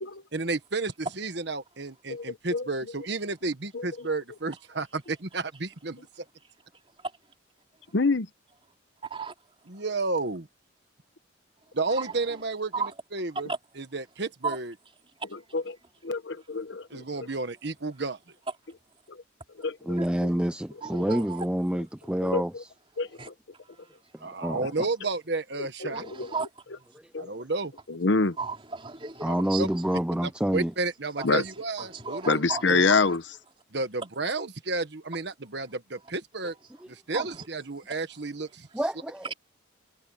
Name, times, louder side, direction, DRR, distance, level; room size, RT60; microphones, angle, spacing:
voice 1, 0.3-6.2 9.7-10.5 11.7-12.7 13.1-13.5 13.8-14.7 16.9-18.2 24.2-26.0 27.2-27.7 29.3-29.7 30.2-32.8 33.7-36.5 37.1-38.7, right 3 dB, 60° right, 1.4 m, -32 dB
voice 2, 2.1-2.7 3.7-4.1 7.9-8.3 15.5-15.6 16.0-17.3 19.1-19.2 19.6-19.7 21.1-21.2 22.2-22.6 23.0-23.1 25.8-26.3 27.1-27.3 27.9-28.4 31.2-31.4 32.3-33.2, left 3 dB, 65° left, 1.0 m, -26 dB
voice 3, 9.0-9.3 11.9-12.4 12.7-12.9 13.3-13.6 14.4-14.6 20.0-20.1 20.8-21.5 23.2-23.3 25.9-26.5 28.4-30.0 31.2-31.5 31.8-33.2 37.1-37.5 37.9-38.0, right 4 dB, 25° right, 3.6 m, -35 dB
voice 4, 19.9-22.7 24.1-24.7 29.2-30.7 38.7-39.2, equal, 5° right, 0.4 m, -28 dB
head